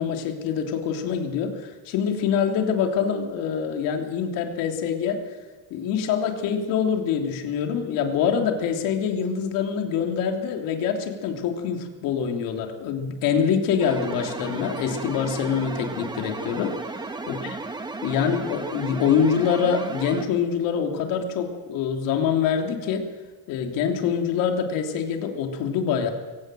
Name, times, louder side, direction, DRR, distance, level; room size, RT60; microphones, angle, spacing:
voice 1, 0.0-5.2 5.7-16.8 17.3-17.6 18.0-23.1 23.5-26.1, left 7 dB, 85° left, 4 dB, 3.4 m, -25 dB
sound 1, 13.8-20.3, right 3 dB, 15° right, 1.4 m, -34 dB
23.5 x 17.5 x 7.8 m, 1.3 s
cardioid pair, 170°, 33 cm